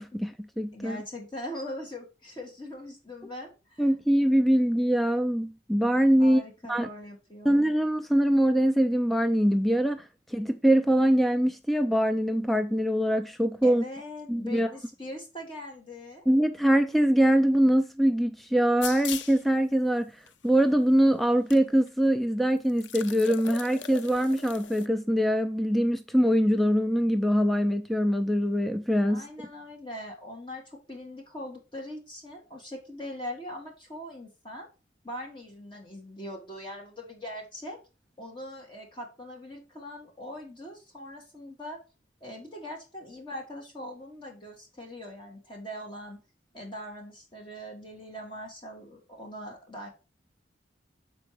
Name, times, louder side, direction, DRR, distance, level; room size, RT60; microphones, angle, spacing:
voice 1, 0.0-1.0 3.8-6.4 6.7-6.9 7.4-13.8 14.3-14.7 16.3-20.1 20.4-29.3, equal, ahead, 0.4 m, -23 dB
voice 2, 0.7-3.8 6.2-7.5 13.6-16.2 29.1-34.7 35.0-37.8 38.2-41.8 42.2-46.2 46.5-49.9, left 1 dB, 25° left, 1.9 m, -41 dB
sound 1, 18.8-19.4 20.3-20.4 21.5-21.6 21.9-22.0 22.7-24.9, left 9 dB, 90° left, 0.5 m, -39 dB
6.8 x 4.6 x 4.8 m
head